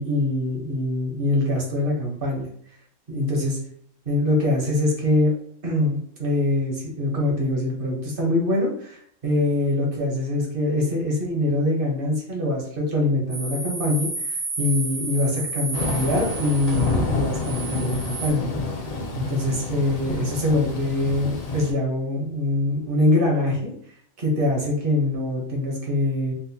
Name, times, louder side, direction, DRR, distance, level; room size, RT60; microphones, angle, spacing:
voice 1, 0.0-2.5 3.1-3.6 4.0-5.3 5.6-18.5 19.1-23.7 24.2-26.3, left 1 dB, 50° right, -2 dB, 1.1 m, -24 dB
sound 1, 13.3-18.3, right 3 dB, 75° right, 1.5 m, -32 dB
Thunder / Rain, 15.7-21.7, left 3 dB, 50° left, 0.4 m, -28 dB
4.1 x 2.2 x 2.7 m, 0.65 s
omnidirectional pair, 1.3 m